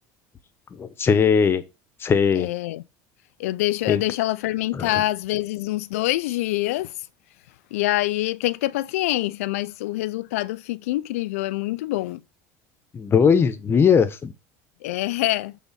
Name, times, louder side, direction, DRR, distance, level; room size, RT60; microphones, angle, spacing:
voice 1, 0.7-1.6 2.0-2.5 3.9-4.0 4.7-5.0 12.9-14.3, left 6 dB, 30° left, 1.1 m, -19 dB
voice 2, 2.4-2.8 3.4-6.9 7.7-12.2 14.8-15.6, left 16 dB, 85° left, 0.5 m, -25 dB
8.2 x 4.0 x 5.5 m
supercardioid pair, 95°, 8 cm